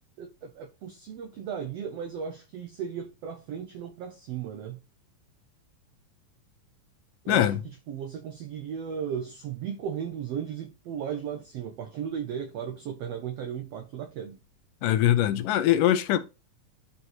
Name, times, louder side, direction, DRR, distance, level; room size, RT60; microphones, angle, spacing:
voice 1, 0.2-4.8 7.2-14.4, right 8 dB, 90° right, 1.4 m, -36 dB
voice 2, 7.3-7.6 14.8-16.2, left 12 dB, 75° left, 2.2 m, -22 dB
11.0 x 4.1 x 2.9 m
omnidirectional pair, 3.9 m